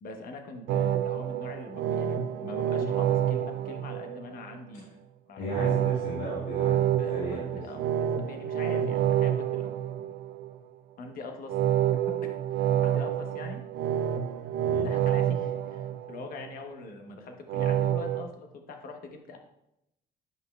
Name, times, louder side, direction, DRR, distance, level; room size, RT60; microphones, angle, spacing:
voice 1, 0.0-4.9 5.3-6.1 7.0-9.7 10.0-10.1 11.0-11.6 11.9-13.6 14.8-19.4, left 3 dB, 60° left, 4 dB, 1.1 m, -43 dB
sound 1, 0.7-4.5 5.5-10.5 11.5-16.5 17.5-18.2, right 10 dB, 70° right, 0.4 m, -28 dB
voice 2, 5.4-7.4 14.6-14.8, left 1 dB, 85° left, -8 dB, 2.6 m, -36 dB
9.1 x 5.4 x 2.3 m, 0.85 s
cardioid pair, 110°, 17 cm